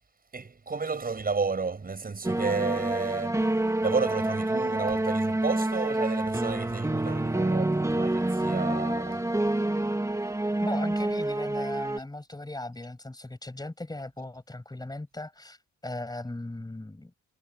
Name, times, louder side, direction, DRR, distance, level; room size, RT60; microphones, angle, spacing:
voice 1, 0.3-9.3, right 4 dB, 30° right, 6.9 m, -32 dB
sound 1, 2.2-12.0, right 1 dB, 10° right, 2.6 m, -27 dB
voice 2, 10.6-15.6 15.8-17.1, left 2 dB, 15° left, 6.6 m, -38 dB
cardioid pair, 90°, 30 cm